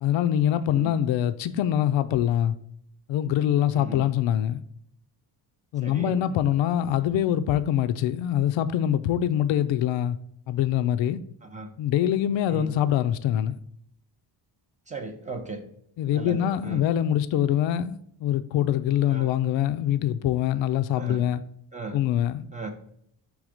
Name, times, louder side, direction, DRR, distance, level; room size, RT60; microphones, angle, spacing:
voice 1, 0.0-2.6 3.1-4.6 5.7-10.2 10.5-11.2 11.8-13.6 16.0-21.4 21.9-22.4, left 11 dB, 80° left, 0.5 m, -24 dB
voice 2, 3.7-4.1 5.8-6.2 11.4-11.7 12.5-12.7 14.9-15.6 16.1-16.8 19.1-19.3 21.0-21.2 21.7-22.0 22.5-22.7, right 3 dB, 15° right, 0.6 m, -36 dB
6.3 x 3.4 x 4.9 m
wide cardioid pair, 180°, 44 cm